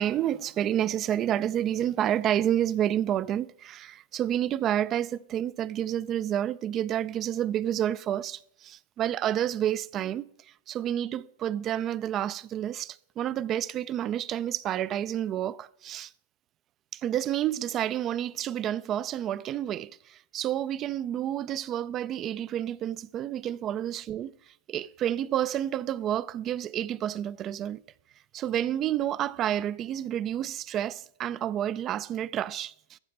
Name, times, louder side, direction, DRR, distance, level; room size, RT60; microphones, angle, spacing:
voice 1, 0.0-16.1 16.9-27.8 28.3-33.0, right 11 dB, 35° right, 0.3 m, -29 dB
14.0 x 5.8 x 5.3 m
hypercardioid pair, 110°, 0 cm